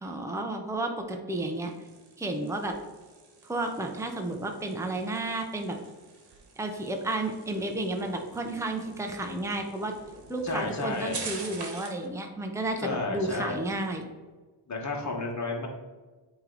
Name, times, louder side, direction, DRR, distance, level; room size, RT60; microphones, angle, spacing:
voice 1, 0.0-1.7 2.2-2.7 3.4-5.8 6.6-9.9 10.3-14.1, right 2 dB, 5° right, 3 dB, 0.7 m, -32 dB
sound 1, 1.4-12.1, right 4 dB, 55° right, 1.4 m, -46 dB
voice 2, 10.4-11.4 12.8-13.7 14.7-15.7, left 3 dB, 35° left, 0 dB, 1.4 m, -32 dB
8.7 x 3.1 x 3.9 m, 1.3 s
cardioid pair, 95°, 47 cm